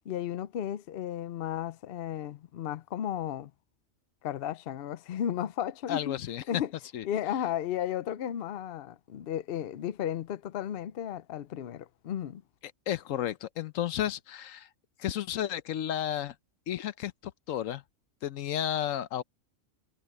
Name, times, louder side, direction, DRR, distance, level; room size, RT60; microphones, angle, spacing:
voice 1, 0.1-3.5 4.2-6.2 6.5-6.7 7.0-12.4, left 10 dB, 60° left, 0.7 m, -34 dB
voice 2, 5.9-6.6 6.9-7.0 12.9-14.7 15.0-16.3 16.7-17.8 18.2-19.2, left 11 dB, 75° left, 1.1 m, -32 dB
omnidirectional pair, 1.4 m